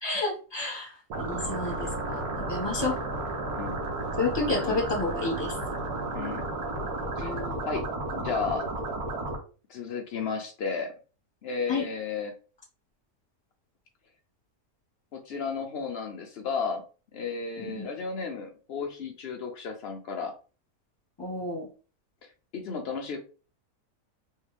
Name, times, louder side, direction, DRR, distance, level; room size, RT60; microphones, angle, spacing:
voice 1, 0.0-0.9 1.3-2.2 2.5-3.0 4.2-5.5 7.2-7.6 11.7-11.8 17.6-17.9 21.2-21.7, left 3 dB, 20° left, -1 dB, 1.1 m, -30 dB
sound 1, 1.1-9.4, right 2 dB, 70° right, 1.5 m, -33 dB
voice 2, 8.1-8.7 9.7-10.9 11.4-12.3 15.1-16.8 17.1-20.3 22.2-23.2, left 5 dB, 85° left, 3 dB, 0.5 m, -33 dB
3.2 x 3.2 x 3.2 m, 0.36 s
omnidirectional pair, 1.7 m